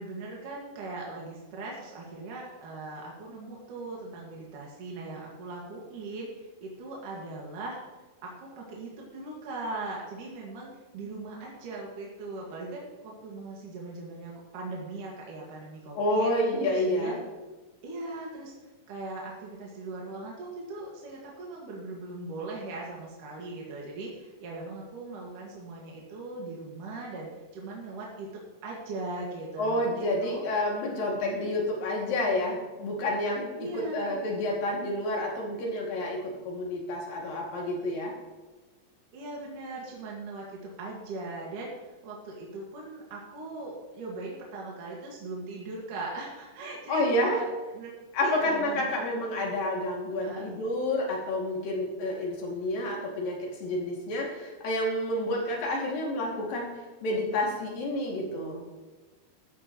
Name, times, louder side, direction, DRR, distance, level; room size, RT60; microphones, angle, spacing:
voice 1, 0.0-7.8 8.2-16.3 16.7-17.1 17.8-18.5 18.9-30.4 31.2-31.5 33.6-34.2 39.1-41.7 42.0-47.1 47.4-47.5 47.7-47.9 48.2-49.1 49.4-49.5 50.2-50.5, right 2 dB, 65° right, -3 dB, 3.6 m, -39 dB
voice 2, 16.0-17.2 29.6-38.1 46.9-47.4 48.1-56.7 57.0-58.6, left 1 dB, 85° left, -1 dB, 4.4 m, -29 dB
14.0 x 13.0 x 3.2 m, 1.2 s
omnidirectional pair, 4.0 m